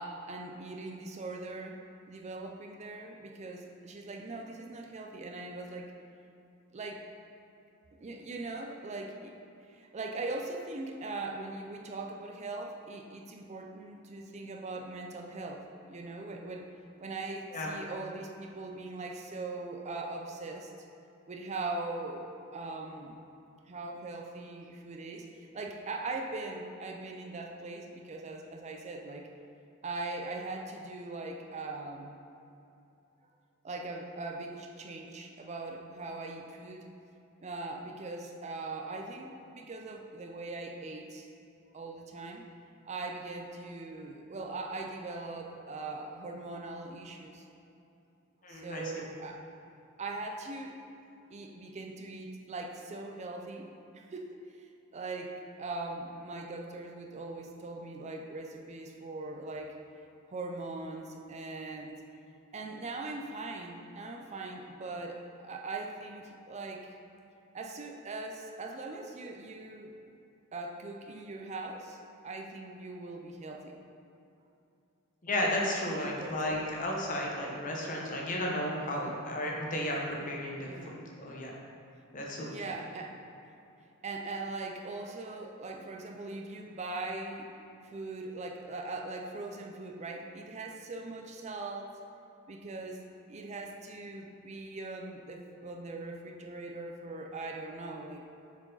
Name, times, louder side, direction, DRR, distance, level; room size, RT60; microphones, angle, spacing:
voice 1, 0.0-5.9 6.7-7.0 8.0-9.3 9.7-16.7 17.0-20.7 21.3-23.2 23.7-29.3 29.8-32.2 33.6-36.8 37.4-41.3 41.7-42.5 42.8-47.4 48.5-49.4 50.0-50.8 51.3-59.8 60.3-62.0 62.5-66.9 67.5-69.9 70.5-72.0 72.2-73.7 75.9-76.4 80.6-81.0 82.4-83.2 84.0-87.5 87.8-91.9 92.5-93.0 93.3-98.2, right 3 dB, 35° right, 2 dB, 0.4 m, -40 dB
voice 2, 48.4-49.1 75.2-81.5 82.1-82.5, left 1 dB, 40° left, -2 dB, 1.0 m, -33 dB
6.8 x 4.7 x 3.9 m, 2.7 s
head